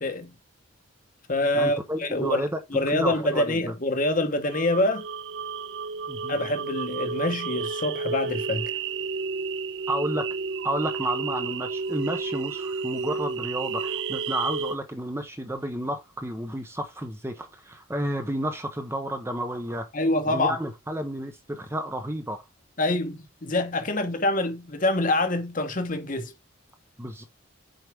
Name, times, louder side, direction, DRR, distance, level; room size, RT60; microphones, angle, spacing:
voice 1, 0.0-0.3 1.3-2.4 2.7-5.1 6.3-8.7 19.9-20.6 22.8-26.3, left 2 dB, 40° left, 1.1 m, -26 dB
voice 2, 1.5-2.6 2.9-3.6 6.1-6.4 9.9-10.3 10.6-19.9 20.2-22.4 27.0-27.2, right 1 dB, 10° right, 0.8 m, -31 dB
sound 1, 4.4-14.8, right 4 dB, 55° right, 0.5 m, -31 dB
7.9 x 4.8 x 3.4 m
head